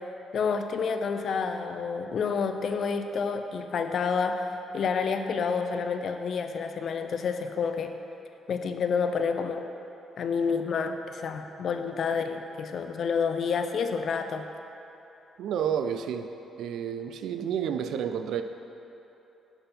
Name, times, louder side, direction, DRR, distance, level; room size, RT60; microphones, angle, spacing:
voice 1, 0.3-7.9 8.5-9.6 10.2-14.5, left 5 dB, 60° left, 7 dB, 0.4 m, -29 dB
voice 2, 15.4-18.4, right 8 dB, 75° right, 8 dB, 0.3 m, -30 dB
6.9 x 4.5 x 5.1 m, 3.0 s
cardioid pair, 90°, 0 cm